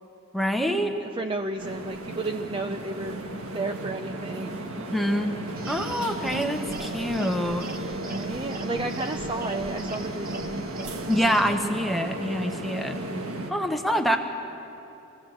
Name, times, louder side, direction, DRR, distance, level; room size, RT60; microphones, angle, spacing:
voice 1, 0.3-1.0 4.8-5.4 5.7-7.7 11.1-13.0 13.5-14.2, equal, ahead, 4 dB, 1.0 m, -26 dB
voice 2, 1.0-3.2 3.5-4.6 8.0-10.7, right 2 dB, 20° right, 6 dB, 0.5 m, -32 dB
sound 1, 1.6-13.5, right 1 dB, 75° right, 1.6 m, -34 dB
sound 2, 5.6-11.5, right 3 dB, 40° right, 0.9 m, -40 dB
22.5 x 16.0 x 7.8 m, 3.0 s
head